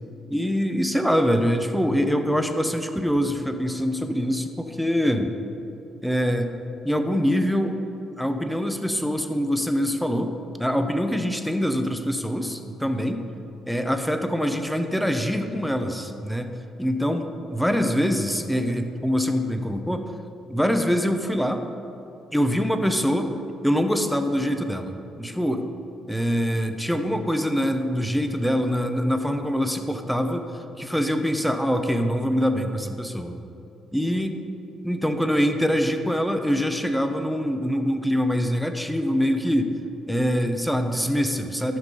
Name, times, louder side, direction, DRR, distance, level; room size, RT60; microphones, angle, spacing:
voice 1, 0.3-5.3 6.0-6.5 6.8-7.8 8.2-10.3 10.6-13.2 13.7-16.5 16.8-20.0 20.5-21.6 22.3-23.3 23.6-25.7 26.1-30.5 30.8-33.4 33.9-34.4 34.8-39.8 40.1-41.8, equal, ahead, 6 dB, 0.8 m, -24 dB
13.0 x 5.9 x 5.4 m, 2.8 s
cardioid pair, 90°, 0 cm